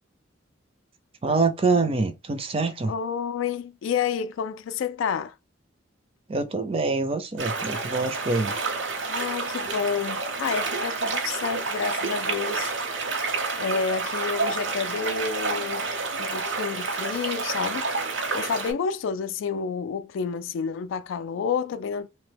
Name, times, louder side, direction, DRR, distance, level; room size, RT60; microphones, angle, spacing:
voice 1, 1.2-2.9 6.3-8.6, right 3 dB, 30° right, 0.4 m, -25 dB
voice 2, 2.9-5.4 9.1-12.7 13.6-15.9 16.2-17.9 18.3-22.1, left 6 dB, 75° left, 0.3 m, -29 dB
sound 1, 7.4-18.7, right 4 dB, 65° right, 0.8 m, -29 dB
2.9 x 2.1 x 3.2 m
head